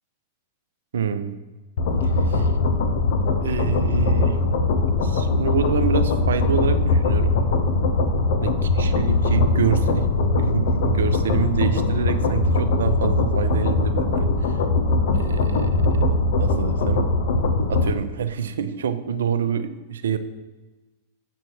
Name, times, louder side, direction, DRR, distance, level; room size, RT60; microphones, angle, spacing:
voice 1, 0.9-1.4 2.0-2.5 3.3-4.4 5.0-7.3 8.4-10.1 10.4-14.6 15.1-16.0 16.4-17.1 17.7-20.2, right 7 dB, 75° right, 10 dB, 0.6 m, -27 dB
sound 1, 1.8-17.9, left 3 dB, 60° left, 0.8 m, -21 dB
8.0 x 4.4 x 6.1 m, 1.2 s
hypercardioid pair, 100°, 0 cm